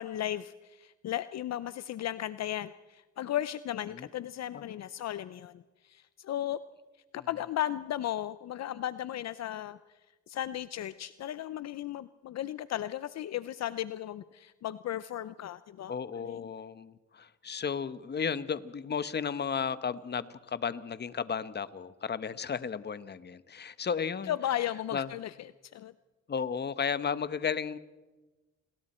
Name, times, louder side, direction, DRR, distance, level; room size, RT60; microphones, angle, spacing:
voice 1, 0.0-6.6 7.1-9.8 10.3-16.5 24.3-25.3 25.7-25.9, left 12 dB, 60° left, 15 dB, 0.6 m, -35 dB
voice 2, 15.9-24.3 24.9-25.1 26.3-27.8, left 6 dB, 35° left, 14 dB, 1.0 m, -34 dB
29.5 x 21.0 x 4.4 m, 1.2 s
cardioid pair, 90°, 30 cm